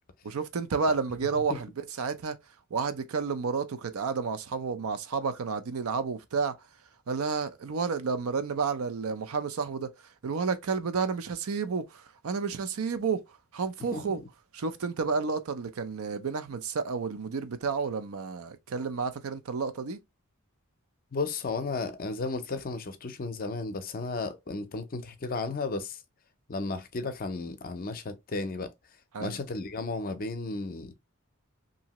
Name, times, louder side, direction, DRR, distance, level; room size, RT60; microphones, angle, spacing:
voice 1, 0.2-1.7 2.0-2.4 2.7-6.5 7.1-9.9 10.2-11.8 12.2-13.2 13.5-14.2 14.5-20.0 29.1-29.4, right 5 dB, 80° right, 0.5 m, -30 dB
voice 2, 21.1-26.0 26.5-28.7 29.2-30.9, left 3 dB, 40° left, 0.5 m, -34 dB
2.8 x 2.7 x 2.9 m
head